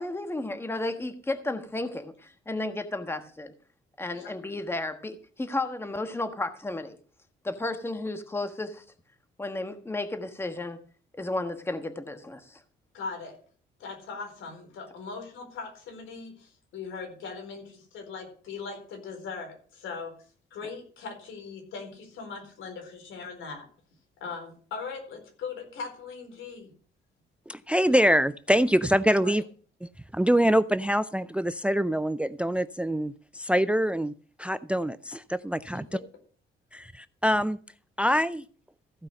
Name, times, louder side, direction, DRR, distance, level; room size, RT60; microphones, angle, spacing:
voice 1, 0.0-3.5 4.0-7.0 7.4-8.8 9.4-10.8 11.1-12.6, left 2 dB, 10° left, 8 dB, 1.3 m, -33 dB
voice 2, 12.9-13.4 13.8-20.1 20.5-23.7 24.2-26.7 29.2-29.4 35.7-36.0, left 5 dB, 80° left, 4 dB, 4.3 m, -40 dB
voice 3, 27.5-29.4 29.8-34.1 34.4-36.0 36.7-37.6 38.0-38.4, equal, 5° right, 16 dB, 0.4 m, -25 dB
15.0 x 5.5 x 6.5 m, 0.43 s
cardioid pair, 90°, 20 cm